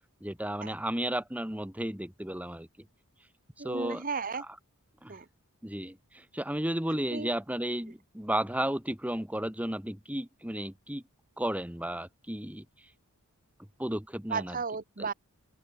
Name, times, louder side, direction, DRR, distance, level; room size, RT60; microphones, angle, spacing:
voice 1, 0.2-2.7 3.6-4.0 5.0-5.2 5.6-11.0 11.4-12.7 13.8-14.6, right 1 dB, 5° right, 1.7 m, -33 dB
voice 2, 3.6-4.4 5.1-5.3 7.1-7.3 14.3-15.1, right 5 dB, 40° right, 1.1 m, -34 dB
open air
head